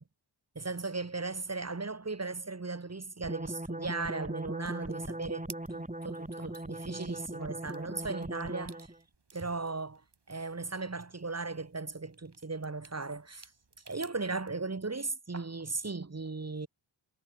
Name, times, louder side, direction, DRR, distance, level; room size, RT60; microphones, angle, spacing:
voice 1, 0.6-8.9 9.3-10.0 10.3-13.5 13.9-16.7, right 3 dB, 30° right, 1.9 m, -37 dB
sound 1, 3.2-9.0, right 1 dB, 15° right, 4.9 m, -39 dB
sound 2, 4.9-14.5, right 4 dB, 55° right, 6.9 m, -57 dB
cardioid pair, 45°, 47 cm